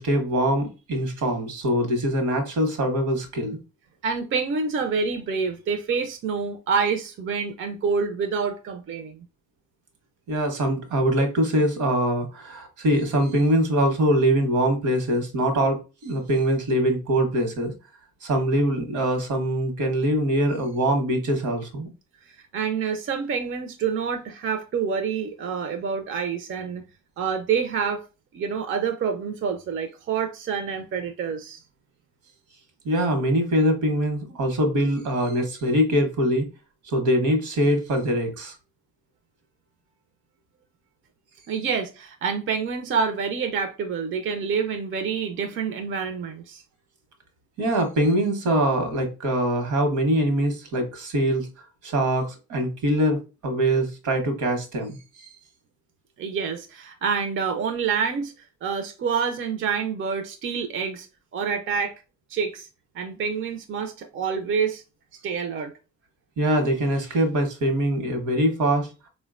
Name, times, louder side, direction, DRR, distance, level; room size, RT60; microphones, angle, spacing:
voice 1, 0.0-3.6 10.3-17.7 18.2-21.9 32.8-36.5 36.9-38.5 47.6-51.5 51.8-55.0 66.4-68.9, right 1 dB, 75° right, 1.0 m, -23 dB
voice 2, 4.0-9.3 22.2-26.8 27.2-28.0 28.3-31.6 41.5-46.6 56.2-58.3 58.6-61.1 61.3-61.9 62.3-62.7 62.9-64.8 65.2-65.7, right 6 dB, 45° right, 0.4 m, -27 dB
3.6 x 2.1 x 2.3 m
cardioid pair, 90°, 30 cm